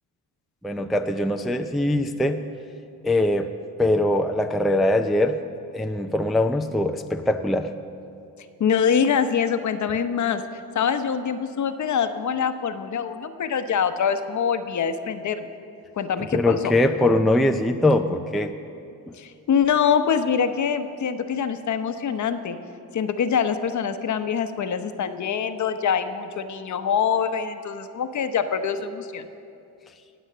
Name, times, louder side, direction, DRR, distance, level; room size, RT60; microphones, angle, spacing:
voice 1, 0.6-2.4 3.0-3.5 3.8-5.4 5.7-7.7 16.3-18.5, left 1 dB, ahead, 5 dB, 0.4 m, -22 dB
voice 2, 8.6-10.4 10.7-15.5 16.0-16.7 19.2-22.6 22.9-29.3, left 7 dB, 45° left, 9 dB, 0.9 m, -24 dB
19.5 x 8.0 x 6.8 m, 2.6 s
cardioid pair, 110°, 39 cm